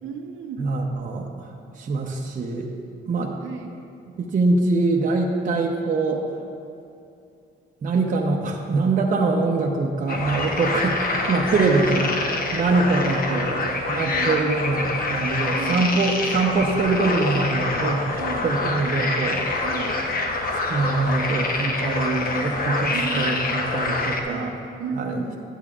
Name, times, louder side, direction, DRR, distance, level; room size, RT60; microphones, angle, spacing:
voice 1, 0.0-0.6 3.4-3.7 11.9-12.1 13.1-14.3 15.5-15.8 18.2-18.4 19.6-19.9 22.3-22.5 22.9-23.3 24.3-25.4, right 5 dB, 80° right, 2 dB, 0.8 m, -34 dB
voice 2, 0.6-2.7 3.1-3.4 4.2-6.4 7.8-12.1 12.5-13.5 13.9-18.0 18.4-19.4 20.5-24.5 24.9-25.2, right 3 dB, 40° right, 0 dB, 0.7 m, -23 dB
sound 1, 10.1-24.2, left 2 dB, 45° left, 0.9 m, -26 dB
11.5 x 8.0 x 2.4 m, 2.5 s
cardioid pair, 90°, 20 cm